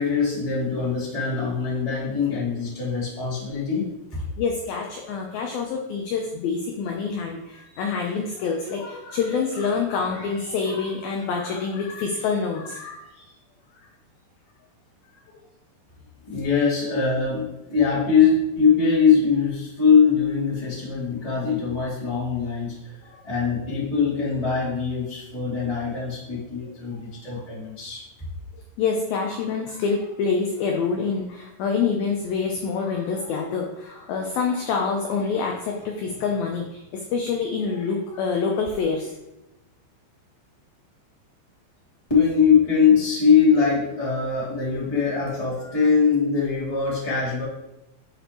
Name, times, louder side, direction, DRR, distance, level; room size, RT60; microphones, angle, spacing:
voice 1, 0.0-3.9 16.3-22.9 23.2-28.0 42.1-47.4, left 6 dB, 10° left, -8 dB, 1.7 m, -22 dB
voice 2, 4.4-13.3 23.1-23.2 27.3-27.4 28.5-39.1 45.6-45.7, left 5 dB, 80° left, 1 dB, 2.1 m, -26 dB
10.5 x 5.1 x 3.0 m, 0.93 s
omnidirectional pair, 5.0 m